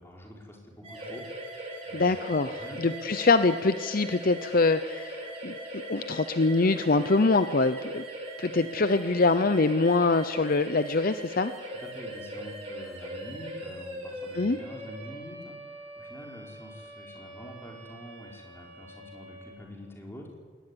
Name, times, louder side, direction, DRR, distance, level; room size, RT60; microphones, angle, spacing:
voice 1, 0.0-1.5 1.9-2.8 11.7-20.4, left 1 dB, 15° left, 0 dB, 4.6 m, -46 dB
sound 1, 0.8-19.5, right 1 dB, 30° right, 8.0 m, -40 dB
voice 2, 1.9-5.6 5.9-8.0 8.4-11.5 14.3-14.6, left 3 dB, 50° left, 12 dB, 0.7 m, -24 dB
21.0 x 18.5 x 9.9 m, 1.5 s
head